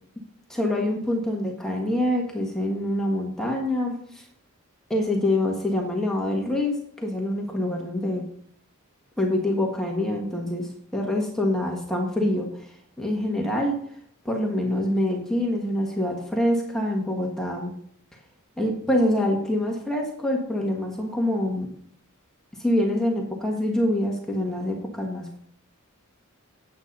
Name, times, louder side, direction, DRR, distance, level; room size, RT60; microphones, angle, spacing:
voice 1, 0.5-4.3 4.9-8.2 9.2-13.8 14.2-17.7 18.6-21.7 22.6-25.4, left 1 dB, ahead, -1 dB, 1.5 m, -25 dB
9.4 x 8.3 x 5.4 m, 0.64 s
head